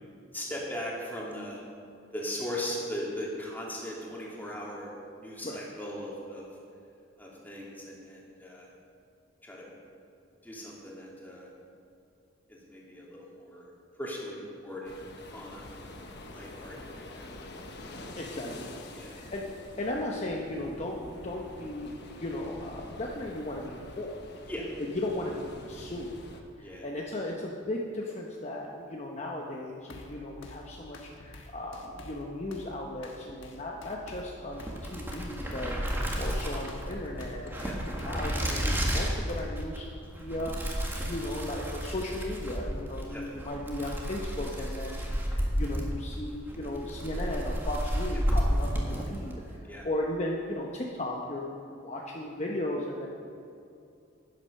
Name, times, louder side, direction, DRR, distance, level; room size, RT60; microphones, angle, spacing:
voice 1, 0.3-1.6 2.1-4.9 5.2-6.5 7.2-8.7 9.4-9.7 10.4-11.5 12.5-13.7 14.0-15.0 15.3-17.3 17.9-18.1 18.9-19.2 24.5-24.7 26.6-26.9 33.2-33.3 37.6-37.7 43.1-43.3 49.6-49.9, left 1 dB, 10° left, -4 dB, 2.3 m, -39 dB
sound 1, 14.8-26.4, left 2 dB, 60° left, 1.1 m, -46 dB
voice 2, 18.2-18.7 19.0-19.5 19.8-24.2 24.9-39.9 40.2-53.1, left 1 dB, 35° left, -1 dB, 0.9 m, -36 dB
sound 2, 29.9-39.6, left 1 dB, 75° left, 1.4 m, -48 dB
sound 3, 34.5-49.4, equal, 10° right, 1.5 m, -32 dB
10.0 x 9.6 x 6.4 m, 2.6 s
head